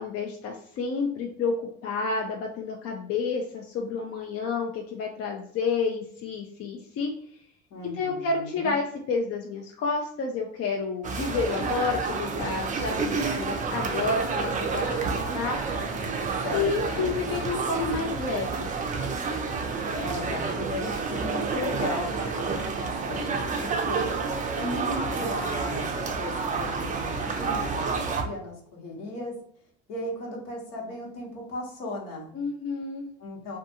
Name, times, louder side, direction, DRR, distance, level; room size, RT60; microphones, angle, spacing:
voice 1, 0.0-1.5 1.8-7.1 7.9-15.6 16.5-18.7 32.3-33.1, left 4 dB, 50° left, 1 dB, 0.5 m, -30 dB
voice 2, 7.7-8.8 16.4-17.3 19.9-24.1 24.6-29.3 29.9-32.3 33.2-33.6, left 1 dB, 70° left, -2 dB, 1.1 m, -36 dB
sound 1, 11.0-28.2, right 4 dB, 25° right, 0.4 m, -29 dB
2.5 x 2.3 x 2.7 m, 0.63 s
supercardioid pair, 100°, 32 cm